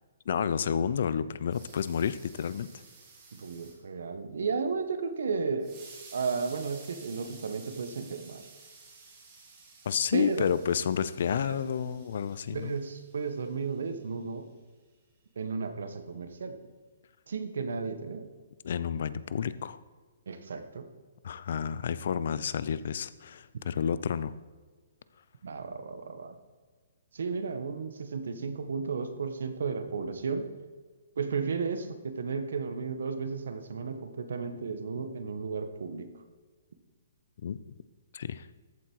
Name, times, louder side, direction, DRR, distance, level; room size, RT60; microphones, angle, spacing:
voice 1, 0.3-2.7 9.8-12.7 18.6-19.8 21.2-24.3 37.4-37.6 38.1-38.5, left 7 dB, 55° left, 16 dB, 0.6 m, -30 dB
sound 1, 1.5-3.8 5.6-14.0, right 4 dB, 25° right, 3.3 m, -53 dB
voice 2, 3.3-5.8 6.1-8.5 10.1-10.5 11.3-12.0 12.5-14.5 15.3-16.6 17.3-18.3 20.3-20.9 23.5-23.6 25.4-26.3 27.1-30.5 31.2-36.1, right 5 dB, 75° right, 8 dB, 1.5 m, -34 dB
14.0 x 8.4 x 4.7 m, 1.4 s
hypercardioid pair, 165°, 0 cm